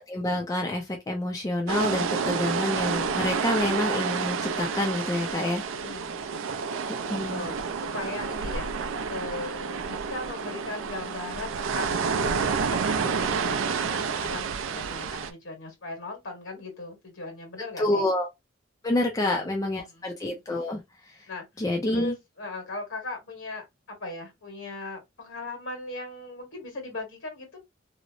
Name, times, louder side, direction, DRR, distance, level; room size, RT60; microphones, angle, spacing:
voice 1, 0.1-5.6 7.1-7.5 17.8-18.3 18.8-20.8 21.6-22.2, left 1 dB, 20° left, 0.4 m, -27 dB
sound 1, 1.7-15.3, right 5 dB, 75° right, 0.4 m, -29 dB
voice 2, 5.7-6.5 7.3-18.1 19.1-20.2 21.3-21.4 21.9-27.6, left 2 dB, 70° left, 1.4 m, -39 dB
2.8 x 2.0 x 2.4 m
head